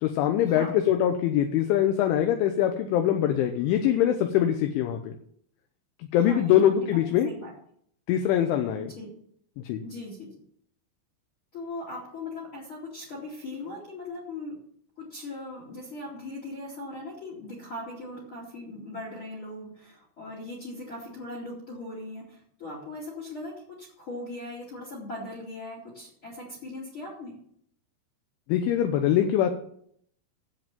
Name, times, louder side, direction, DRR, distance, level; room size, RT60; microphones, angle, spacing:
voice 1, 0.0-5.1 6.1-7.3 8.1-8.9 9.6-9.8 28.5-29.5, left 10 dB, 80° left, 6 dB, 3.1 m, -23 dB
voice 2, 6.1-7.0 7.2-7.5 8.8-9.1 9.8-10.4 11.5-14.6 15.0-27.4, left 2 dB, 35° left, -1 dB, 2.6 m, -39 dB
11.0 x 7.9 x 7.4 m, 0.67 s
omnidirectional pair, 5.9 m